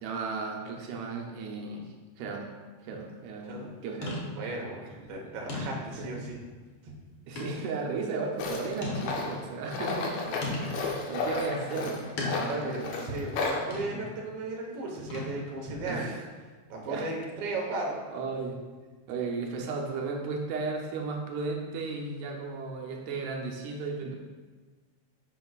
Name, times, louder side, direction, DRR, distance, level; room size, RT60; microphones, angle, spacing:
voice 1, 0.0-1.9 2.2-2.5 2.8-4.3 5.2-5.3 6.0-6.1 7.3-13.0 13.9-14.0 15.9-16.2 16.9-17.1 18.1-18.6 19.1-24.2, right 4 dB, 85° right, 0 dB, 2.2 m, -35 dB
sound 1, 2.9-3.1 4.0-4.6 5.1-5.2 5.5-6.1 7.4-7.7 8.2-8.3 8.8-9.4 10.4-10.9 12.2-12.7 13.7-14.1 15.1-15.6, left 2 dB, 55° left, 1.7 m, -36 dB
voice 2, 4.3-4.8 5.1-6.4 6.8-6.9 12.5-16.1 16.7-18.0, right 2 dB, 60° right, -2 dB, 2.0 m, -35 dB
Tools, 8.4-13.6, left 4 dB, 70° left, 2.0 m, -33 dB
10.5 x 6.1 x 2.4 m, 1.4 s
omnidirectional pair, 3.4 m